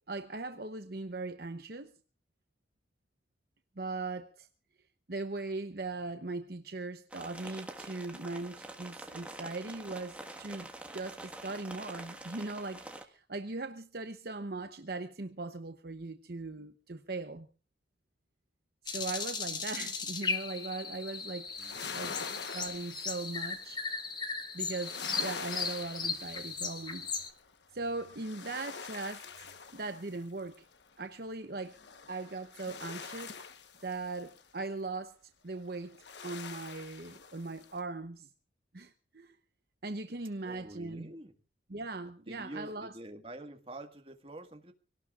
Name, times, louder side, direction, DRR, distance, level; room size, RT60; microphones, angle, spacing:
voice 1, 0.1-1.9 3.8-4.5 5.1-17.5 18.8-21.5 21.9-23.8 24.5-27.1 27.7-30.6 31.0-31.8 32.1-33.5 33.8-35.2 35.4-36.0 36.2-38.3 38.7-39.4 39.8-41.1 41.7-42.9, right 3 dB, 55° right, 0.9 m, -39 dB
sound 1, 7.1-13.0, right 1 dB, 5° right, 1.6 m, -46 dB
sound 2, 18.9-27.3, left 5 dB, 25° left, 1.4 m, -37 dB
sound 3, 20.3-20.7 21.3-24.0 24.6-27.4 27.8-30.8 31.7-34.4 35.7-37.8, left 6 dB, 70° left, 1.2 m, -45 dB
voice 2, 21.6-22.2 40.4-41.3 42.3-44.7, right 1 dB, 30° right, 1.8 m, -47 dB
25.5 x 18.0 x 2.5 m
head